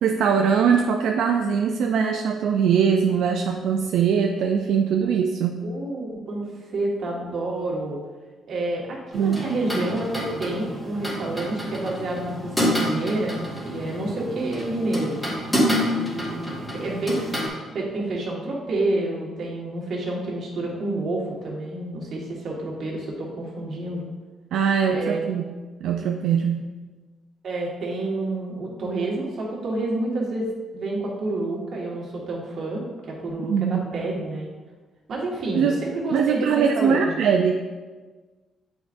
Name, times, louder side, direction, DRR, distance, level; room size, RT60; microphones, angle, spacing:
voice 1, 0.0-5.6 9.1-9.4 24.5-25.4 25.8-26.6 33.5-33.9 35.5-35.8 36.1-37.5, right 7 dB, 80° right, 3 dB, 0.4 m, -21 dB
voice 2, 5.6-8.0 8.5-15.2 16.0-17.2 17.7-24.1 24.9-25.3 27.4-34.5 35.1-37.1, right 2 dB, 55° right, -3 dB, 1.6 m, -29 dB
sound 1, 9.1-17.5, equal, 5° left, 1.9 m, -28 dB
7.9 x 4.8 x 2.6 m, 1.3 s
cardioid pair, 110°, 0 cm